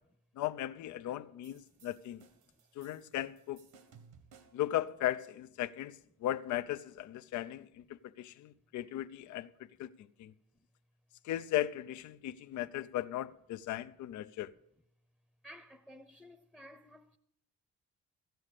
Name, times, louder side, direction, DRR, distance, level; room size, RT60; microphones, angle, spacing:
voice 1, 0.4-2.2 2.8-3.6 4.5-9.5 9.8-9.9 10.2-10.3 11.2-14.5, left 13 dB, 70° left, 0.6 m, -37 dB
sound 1, 1.4-4.7, right 6 dB, 80° right, 1.6 m, -61 dB
voice 2, 15.4-17.2, equal, 5° left, 0.7 m, -55 dB
13.5 x 9.2 x 6.5 m
cardioid pair, 90°, 30 cm